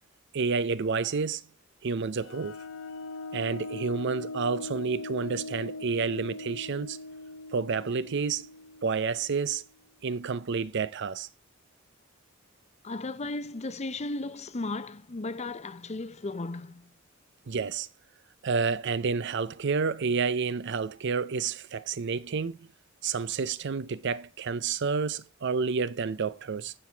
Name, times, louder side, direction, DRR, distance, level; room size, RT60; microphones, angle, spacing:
voice 1, 0.3-1.4 1.8-2.6 3.3-7.0 7.5-8.5 8.8-9.6 10.0-11.3 17.5-17.9 18.4-22.7 23.0-26.7, right 5 dB, 60° right, 0.5 m, -29 dB
sound 1, 2.2-9.6, left 2 dB, 75° left, 0.6 m, -40 dB
voice 2, 12.8-16.9, left 2 dB, 35° left, 0.6 m, -35 dB
10.0 x 6.1 x 3.4 m
head